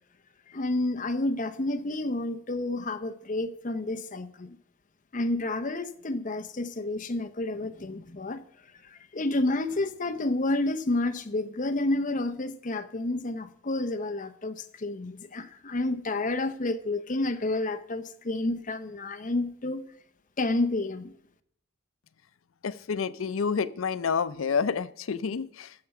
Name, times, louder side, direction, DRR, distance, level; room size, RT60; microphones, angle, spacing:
voice 1, 0.5-4.6 5.1-8.4 8.9-19.9 20.4-21.1, left 2 dB, 40° left, 0.7 m, -30 dB
voice 2, 22.6-25.7, left 6 dB, 90° left, 0.5 m, -29 dB
14.5 x 6.8 x 5.9 m
head